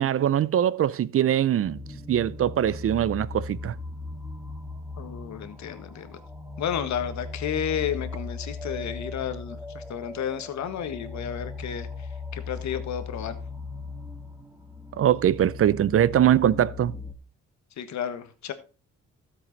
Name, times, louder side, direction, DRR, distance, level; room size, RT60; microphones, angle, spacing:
voice 1, 0.0-1.8 2.1-3.7 15.0-17.0, right 10 dB, 50° right, 0.6 m, -22 dB
sound 1, 1.6-17.1, left 3 dB, 10° right, 1.6 m, -38 dB
voice 2, 5.0-6.2 6.6-13.4 17.8-18.5, left 9 dB, 65° left, 1.5 m, -32 dB
13.5 x 7.5 x 4.0 m
cardioid pair, 90°, 30 cm